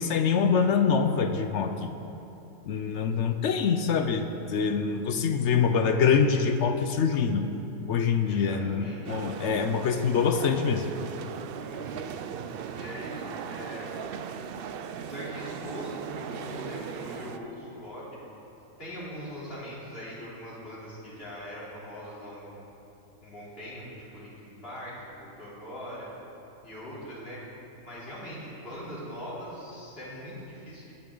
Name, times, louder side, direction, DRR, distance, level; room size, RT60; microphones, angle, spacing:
voice 1, 0.0-1.9 2.7-7.5 7.9-10.9, left 6 dB, 65° left, 8 dB, 0.8 m, -25 dB
voice 2, 8.2-9.3 11.6-12.0 12.7-13.9 15.0-18.0 18.8-22.6 23.2-26.1 26.6-27.4 27.8-30.9, equal, 40° left, -8 dB, 3.7 m, -41 dB
sound 1, 9.0-17.4, right 7 dB, 70° right, 0.5 m, -38 dB
18.0 x 9.9 x 3.8 m, 2.9 s
omnidirectional pair, 1.5 m